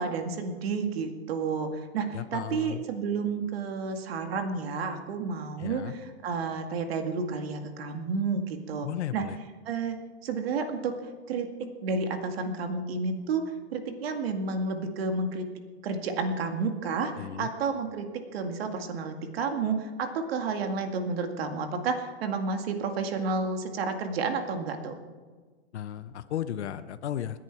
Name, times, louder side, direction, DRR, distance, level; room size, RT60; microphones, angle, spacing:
voice 1, 0.0-8.9 9.1-9.3 9.7-10.0 10.2-10.9 11.3-11.5 11.8-15.5 15.8-25.0, right 4 dB, 60° right, 5 dB, 2.1 m, -31 dB
voice 2, 2.1-2.8 5.6-5.9 8.8-9.4 17.1-17.5 25.7-27.4, left 11 dB, 75° left, 12 dB, 0.9 m, -35 dB
28.5 x 10.5 x 4.6 m, 1.5 s
hypercardioid pair, 160°, 34 cm